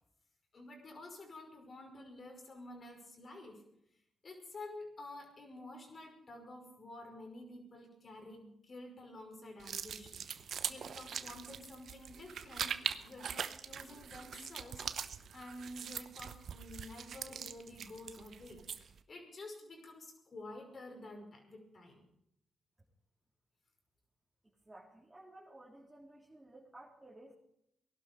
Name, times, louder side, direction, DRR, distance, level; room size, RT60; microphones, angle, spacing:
voice 1, 0.5-3.6 4.2-22.0, left 2 dB, 50° left, 3 dB, 5.4 m, -50 dB
sound 1, 9.6-19.0, right 7 dB, 65° right, 0.8 m, -42 dB
voice 2, 24.6-27.3, right 1 dB, 15° right, -4 dB, 3.7 m, -55 dB
19.0 x 12.0 x 5.3 m, 0.76 s
supercardioid pair, 55°, 0 cm